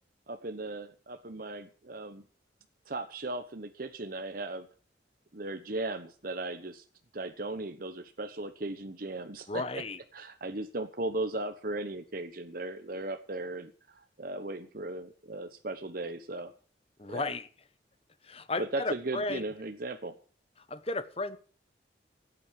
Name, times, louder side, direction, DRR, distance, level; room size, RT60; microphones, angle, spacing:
voice 1, 0.3-2.2 2.9-4.7 5.3-6.8 7.1-9.8 10.1-16.5 17.1-17.3 18.6-20.2, right 2 dB, 50° right, 1.1 m, -37 dB
voice 2, 9.5-10.0 17.0-17.5 18.2-19.4 20.7-21.4, left 2 dB, 30° left, 1.1 m, -34 dB
16.0 x 8.8 x 7.5 m
head